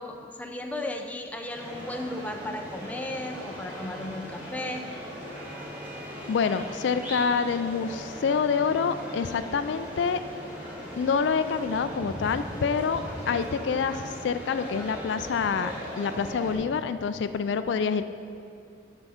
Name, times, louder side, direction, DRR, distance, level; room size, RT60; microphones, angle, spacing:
voice 1, 0.0-4.9, left 1 dB, 10° left, 3 dB, 0.5 m, -35 dB
sound 1, 1.5-16.5, equal, 10° right, 1.7 m, -39 dB
voice 2, 6.3-10.2 11.0-18.1, left 5 dB, 75° left, 11 dB, 0.3 m, -27 dB
7.8 x 6.1 x 5.5 m, 2.4 s
head